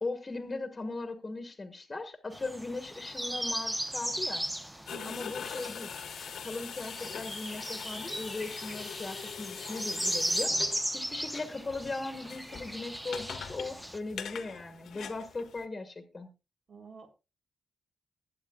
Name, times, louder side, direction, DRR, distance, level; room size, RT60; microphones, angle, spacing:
voice 1, 0.0-4.4 5.0-5.9 6.4-16.3, left 3 dB, 20° left, 1.4 m, -38 dB
sound 1, 2.3-14.0, equal, 5° right, 0.8 m, -37 dB
sound 2, 4.9-15.6, left 7 dB, 70° left, 1.2 m, -43 dB
voice 2, 4.9-5.3 16.7-17.1, right 6 dB, 55° right, 1.8 m, -48 dB
21.0 x 8.6 x 2.3 m
wide cardioid pair, 155°, 0 cm